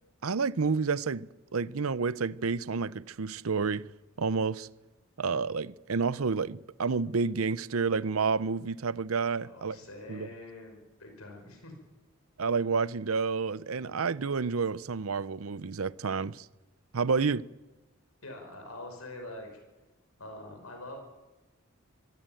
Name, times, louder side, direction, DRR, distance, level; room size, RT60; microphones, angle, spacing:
voice 1, 0.2-3.9 4.2-4.7 5.2-9.8 10.1-10.3 12.4-16.5 16.9-17.4, right 5 dB, 75° right, 0.7 m, -30 dB
voice 2, 9.3-11.7 18.2-19.6 20.2-21.0, left 1 dB, 85° left, 5.3 m, -45 dB
25.0 x 15.5 x 9.2 m
head